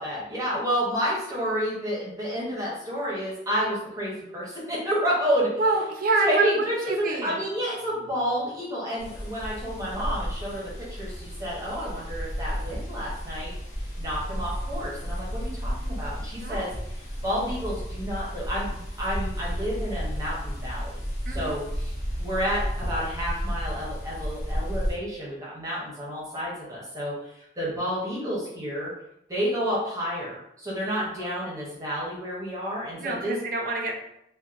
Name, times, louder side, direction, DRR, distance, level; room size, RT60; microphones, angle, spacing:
voice 1, 0.0-5.5 6.2-13.5 14.0-16.7 16.9-21.0 21.3-28.9 29.3-33.4, equal, 20° right, -6 dB, 0.8 m, -30 dB
voice 2, 5.6-6.8 7.0-7.4 16.4-16.6 21.3-21.6 33.0-33.9, right 3 dB, 50° right, 2 dB, 0.4 m, -26 dB
sound 1, 9.0-25.0, equal, 35° left, 0.6 m, -33 dB
2.7 x 2.1 x 2.4 m, 0.79 s
head